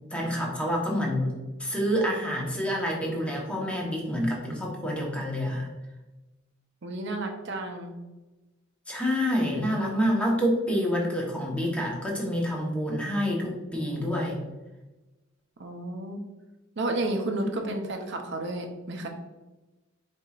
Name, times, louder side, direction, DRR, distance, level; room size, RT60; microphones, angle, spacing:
voice 1, 0.1-1.3 1.6-5.7 8.9-14.4 17.6-17.7, equal, 5° left, -2 dB, 1.0 m, -27 dB
voice 2, 6.8-8.0 15.6-16.2 16.8-19.1, right 2 dB, 60° right, 3 dB, 0.6 m, -31 dB
4.5 x 4.2 x 2.4 m, 1.1 s
head